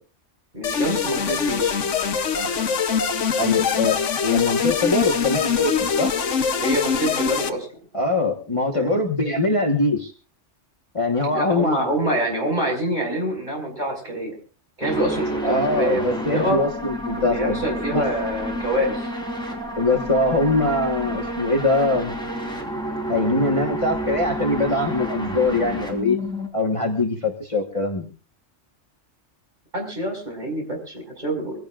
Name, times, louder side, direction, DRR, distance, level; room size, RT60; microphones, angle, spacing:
voice 1, 0.5-1.8 6.6-7.7 8.7-9.0 11.2-14.4 14.8-16.6 17.2-19.0 29.7-31.6, right 1 dB, 40° right, 0 dB, 5.8 m, -26 dB
sound 1, 0.6-7.5, left 6 dB, 75° left, 1.3 m, -23 dB
voice 2, 3.4-5.7 6.0-6.1 7.9-10.1 10.9-11.8 15.4-17.6 17.9-18.1 19.8-22.2 23.1-26.2 26.5-28.1, left 2 dB, 25° left, 1 dB, 1.5 m, -22 dB
sound 2, 14.8-26.5, right 1 dB, 5° left, 3.6 m, -30 dB
24.5 x 17.0 x 2.5 m, 0.37 s
omnidirectional pair, 1.3 m